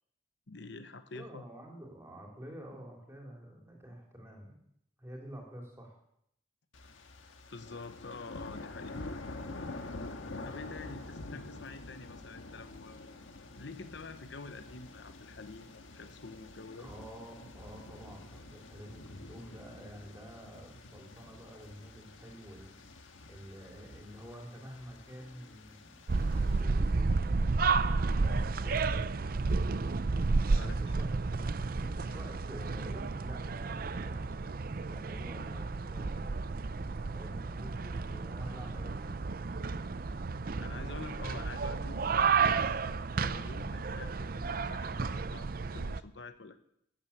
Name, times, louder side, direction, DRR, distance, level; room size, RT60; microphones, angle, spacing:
voice 1, 0.5-1.5 7.5-9.0 10.4-13.2 13.6-16.9 30.5-31.0 40.6-42.7 43.2-46.6, left 3 dB, 65° left, 10 dB, 0.9 m, -47 dB
voice 2, 1.1-4.7 5.0-6.0 16.8-27.8 28.1-28.9 30.5-31.1 31.8-34.5 34.9-36.4 37.1-39.1, equal, 15° right, 0 dB, 3.4 m, -49 dB
sound 1, 6.7-26.6, left 2 dB, 80° left, 1.5 m, -47 dB
sound 2, 26.1-46.0, right 4 dB, 45° right, 0.5 m, -32 dB
13.0 x 8.7 x 8.6 m, 0.73 s
head